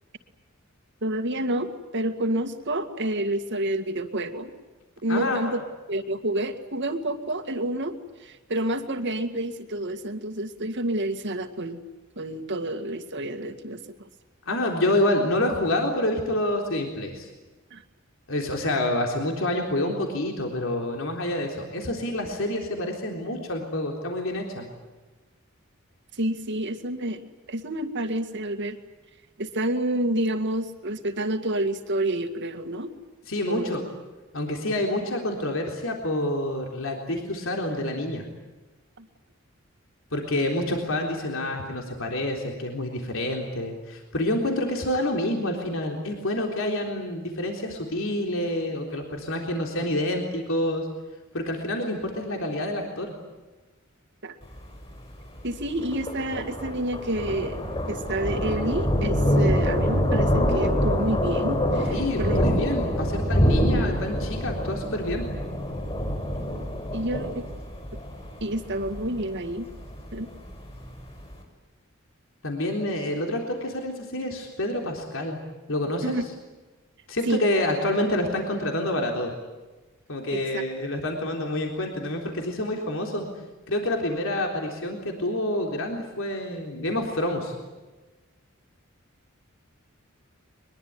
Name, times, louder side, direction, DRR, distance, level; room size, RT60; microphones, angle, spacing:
voice 1, 1.0-4.5 5.0-5.6 5.9-11.8 12.2-14.1 17.7-17.8 26.1-27.2 27.5-28.8 29.4-32.9 33.5-33.8 39.0-39.1 54.2-54.4 55.4-57.6 57.9-62.5 66.9-67.5 68.4-69.7 70.1-70.3 76.0-76.2 77.3-77.5 80.3-80.6, right 1 dB, 60° right, 7 dB, 2.1 m, -29 dB
voice 2, 5.1-5.5 14.5-17.3 18.3-24.6 33.3-33.8 34.3-38.2 40.1-50.9 51.3-53.1 61.9-65.3 72.4-75.4 75.7-76.1 77.1-79.3 80.1-83.3 83.7-87.6, left 1 dB, 70° left, 2 dB, 3.8 m, -28 dB
Thunder, 54.4-71.3, equal, 25° left, 7.2 m, -26 dB
23.0 x 22.0 x 9.7 m, 1.2 s
head